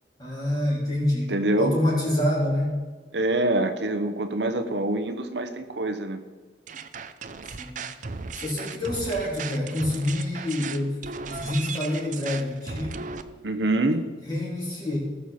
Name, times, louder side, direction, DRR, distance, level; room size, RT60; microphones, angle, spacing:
voice 1, 0.2-2.8 7.4-7.9 8.4-13.1 14.3-15.0, left 1 dB, 25° left, -6 dB, 3.5 m, -27 dB
voice 2, 1.3-1.7 3.1-6.2 13.4-14.1, right 2 dB, 75° right, 7 dB, 1.0 m, -25 dB
sound 1, 6.7-13.2, right 5 dB, 45° right, 0.6 m, -36 dB
19.0 x 6.8 x 4.4 m, 1.4 s
head